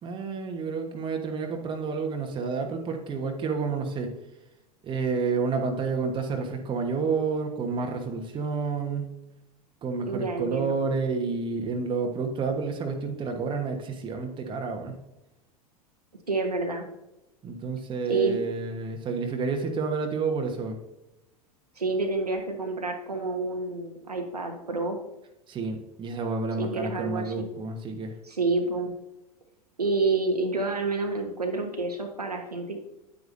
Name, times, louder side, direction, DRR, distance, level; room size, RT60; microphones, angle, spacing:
voice 1, 0.0-4.1 4.8-9.1 9.8-15.0 17.4-20.8 25.5-28.1, right 4 dB, 25° right, 4 dB, 1.3 m, -29 dB
voice 2, 10.1-10.8 16.3-16.9 18.1-18.4 21.8-25.0 26.6-27.5 28.2-28.9 29.8-32.8, right 3 dB, 85° right, 3 dB, 1.4 m, -28 dB
9.5 x 9.3 x 2.6 m, 0.93 s
figure-of-eight pair, 85°, 19 cm